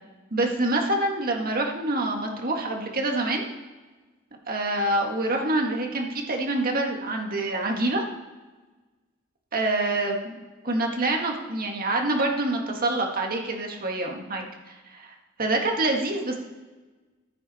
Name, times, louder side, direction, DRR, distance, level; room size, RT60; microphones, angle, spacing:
voice 1, 0.3-3.4 4.5-8.0 9.5-10.3 10.6-16.4, right 2 dB, 45° right, 2 dB, 1.9 m, -26 dB
14.5 x 8.4 x 4.3 m, 1.3 s
head